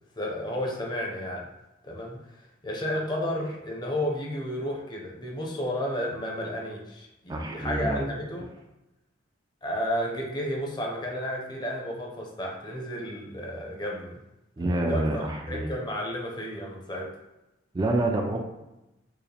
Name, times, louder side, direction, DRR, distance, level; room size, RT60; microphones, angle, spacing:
voice 1, 0.2-1.5 1.8-8.5 9.6-14.2 14.7-17.1, equal, 25° left, -1 dB, 0.7 m, -32 dB
voice 2, 7.3-8.1 14.6-15.7 17.7-18.4, right 1 dB, 20° right, 2 dB, 0.3 m, -27 dB
4.7 x 2.1 x 3.3 m, 0.96 s
head